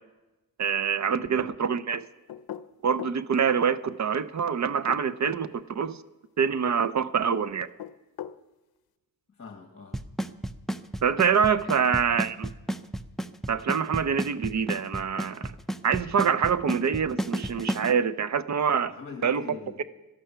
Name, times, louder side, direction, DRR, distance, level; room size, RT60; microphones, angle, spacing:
voice 1, 0.6-2.1 2.8-6.0 6.4-7.7 11.0-12.5 13.5-15.5 15.8-18.9 19.2-19.4, right 7 dB, 50° right, 14 dB, 0.6 m, -25 dB
sound 1, 2.3-3.2 4.7-5.5 7.6-8.4, left 10 dB, 80° left, 0.6 m, -40 dB
voice 2, 9.3-10.0 11.7-11.8 18.9-19.8, left 5 dB, 35° left, 2 dB, 1.6 m, -43 dB
Drum kit / Snare drum / Bass drum, 9.9-17.9, right 1 dB, ahead, 0.5 m, -30 dB
18.0 x 12.5 x 5.8 m, 1.1 s
wide cardioid pair, 110°, 36 cm